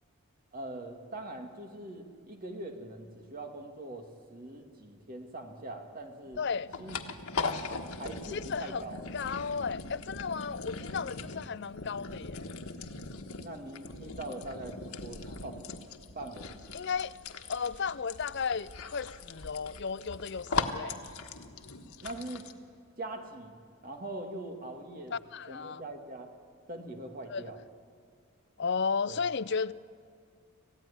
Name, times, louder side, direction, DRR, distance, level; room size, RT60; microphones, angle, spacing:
voice 1, 0.5-6.4 6.8-7.0 8.0-9.1 13.4-15.6 16.1-16.6 22.0-22.5 23.0-25.1 25.5-26.3 26.7-27.6 29.1-29.2, right 2 dB, 40° right, 2.3 m, -42 dB
sound 1, 6.2-22.5, left 4 dB, 85° left, 1.4 m, -39 dB
voice 2, 6.4-6.7 8.3-12.5 16.7-17.2 17.5-21.0 25.1-25.8 27.3-27.4 28.6-29.7, left 5 dB, 50° left, 0.5 m, -34 dB
27.0 x 15.5 x 9.9 m
head